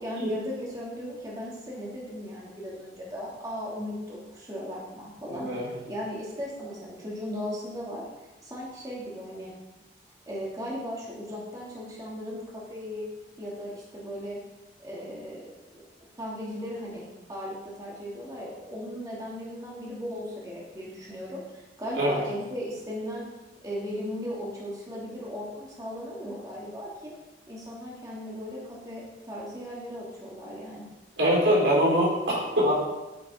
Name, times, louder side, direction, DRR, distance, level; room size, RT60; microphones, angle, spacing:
voice 1, 0.0-5.5 5.9-8.0 8.4-9.5 10.3-13.1 13.4-14.4 14.8-15.8 16.2-23.2 23.6-27.1 27.5-30.9, equal, 20° right, -5 dB, 2.5 m, -37 dB
voice 2, 5.3-5.7 22.0-22.2 31.2-32.8, equal, 75° right, -4 dB, 4.2 m, -23 dB
10.5 x 9.9 x 4.4 m, 1.1 s
head